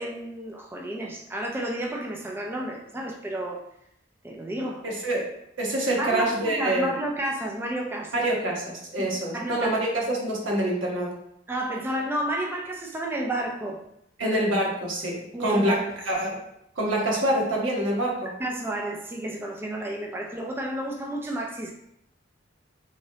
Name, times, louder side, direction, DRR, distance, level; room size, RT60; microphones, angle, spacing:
voice 1, 0.0-3.6 4.2-4.8 6.0-8.2 9.0-9.7 11.5-13.8 14.2-14.4 15.3-15.9 18.4-21.7, right 1 dB, 10° right, 0 dB, 0.3 m, -31 dB
voice 2, 4.8-5.3 5.6-6.9 8.1-11.1 14.2-15.7 16.1-16.4 16.8-18.3, right 1 dB, 80° right, -2 dB, 1.1 m, -26 dB
3.7 x 3.0 x 2.7 m, 0.76 s
head